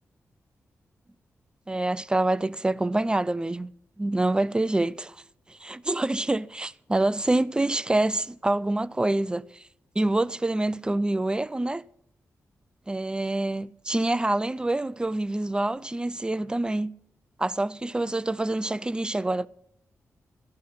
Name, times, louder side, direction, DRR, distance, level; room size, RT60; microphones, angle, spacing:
voice 1, 1.7-3.7 4.0-5.2 5.5-9.7 10.0-11.8 12.9-16.9 17.4-19.5, right 2 dB, 15° right, 0.5 m, -26 dB
14.5 x 12.0 x 5.7 m
cardioid pair, 60°, 6 cm